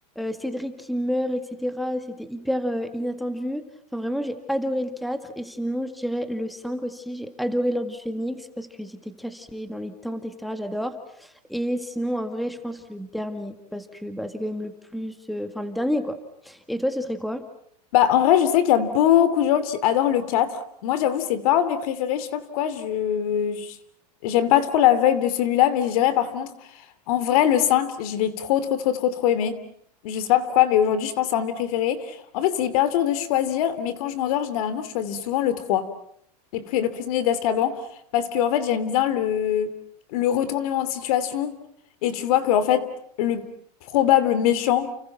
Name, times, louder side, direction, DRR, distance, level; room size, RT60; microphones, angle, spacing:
voice 1, 0.2-3.7 3.9-16.2 16.4-17.5, equal, ahead, 8 dB, 1.9 m, -29 dB
voice 2, 17.9-23.7 24.2-26.5 27.1-29.6 30.0-35.9 36.5-37.9 38.1-39.7 40.1-41.6 42.0-42.9 43.2-43.4 43.9-44.9, left 10 dB, 65° left, 14 dB, 2.8 m, -22 dB
30.0 x 30.0 x 5.9 m, 0.67 s
supercardioid pair, 135°, 20 cm